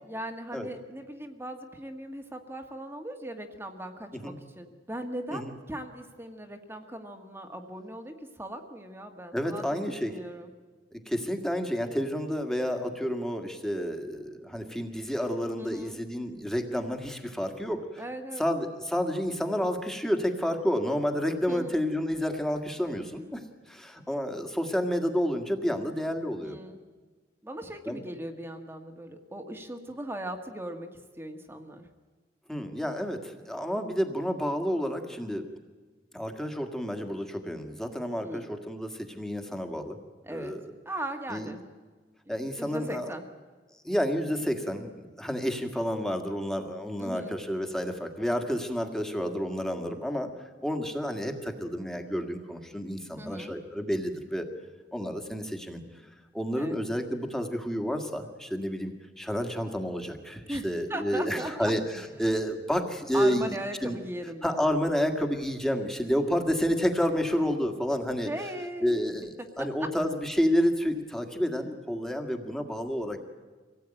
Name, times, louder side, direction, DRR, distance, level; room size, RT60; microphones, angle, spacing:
voice 1, 0.1-10.5 15.6-16.0 18.0-18.4 21.5-21.8 26.4-26.8 27.4-30.9 31.2-31.9 38.2-38.5 40.2-40.6 40.8-41.6 42.3-43.2 47.0-47.4 53.2-53.6 56.6-56.8 60.5-61.7 63.1-64.6 68.2-69.0 69.6-69.9, right 1 dB, 15° right, 5 dB, 1.6 m, -38 dB
voice 2, 9.3-10.1 10.9-18.0 18.4-23.4 23.7-26.6 27.9-28.0 32.5-35.5 36.1-40.0 40.3-40.6 41.3-41.5 42.3-43.1 43.8-50.3 50.6-54.5 54.9-55.8 56.3-64.0 64.4-68.3 68.8-73.2, equal, 5° left, 5 dB, 1.9 m, -30 dB
25.0 x 17.5 x 9.0 m, 1.4 s
head